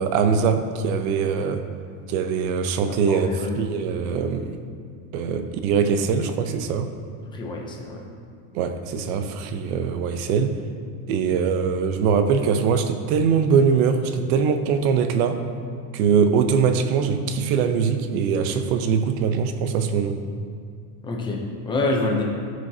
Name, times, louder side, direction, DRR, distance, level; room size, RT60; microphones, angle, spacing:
voice 1, 0.0-1.7 2.1-4.6 5.1-6.9 8.5-10.6 11.1-15.4 15.9-20.2, right 6 dB, 65° right, 8 dB, 0.8 m, -22 dB
voice 2, 2.9-3.6 7.3-8.0 21.0-21.4 21.6-22.2, left 2 dB, 10° left, 0 dB, 0.5 m, -26 dB
14.0 x 6.3 x 2.8 m, 2.3 s
cardioid pair, 170°, 45 cm